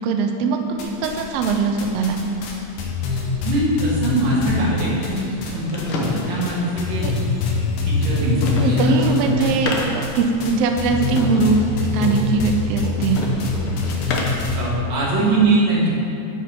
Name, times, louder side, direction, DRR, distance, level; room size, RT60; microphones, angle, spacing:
voice 1, 0.0-2.2 7.0-7.1 8.6-13.2, right 4 dB, 85° right, 4 dB, 1.3 m, -21 dB
sound 1, 0.8-1.5 1.8-5.5 5.8-6.5 6.8-14.6, left 4 dB, 90° left, 2.4 m, -24 dB
voice 2, 3.4-7.0 7.8-9.5 9.8-9.9 12.0-12.1 12.8-12.9 13.5-13.9 14.5-15.9, right 2 dB, 65° right, -6 dB, 3.0 m, -22 dB
sound 2, 5.3-14.5, left 2 dB, 65° left, 1.5 m, -31 dB
8.8 x 5.3 x 5.1 m, 2.7 s
omnidirectional pair, 3.3 m